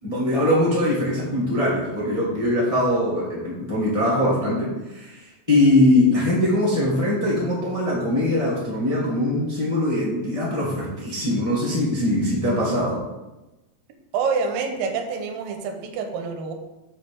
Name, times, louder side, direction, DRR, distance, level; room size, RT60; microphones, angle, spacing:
voice 1, 0.0-5.2 5.5-13.0, left 1 dB, 15° left, -6 dB, 1.1 m, -22 dB
voice 2, 14.1-16.5, right 5 dB, 85° right, 5 dB, 2.6 m, -27 dB
5.7 x 5.4 x 6.8 m, 1.0 s
omnidirectional pair, 4.0 m